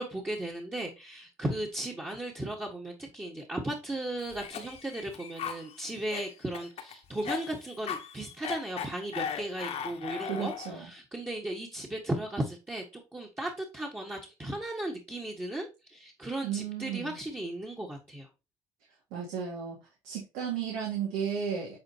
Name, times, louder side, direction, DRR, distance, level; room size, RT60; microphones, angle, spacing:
voice 1, 0.0-12.8 13.1-18.3, right 1 dB, 15° right, -2 dB, 1.5 m, -36 dB
Cough, 4.2-10.8, left 8 dB, 60° left, 1.4 m, -38 dB
voice 2, 10.3-10.9 16.4-17.2 19.1-19.8 20.0-21.8, right 7 dB, 90° right, -2 dB, 2.1 m, -34 dB
8.7 x 3.8 x 2.8 m, 0.26 s
cardioid pair, 95°, 12 cm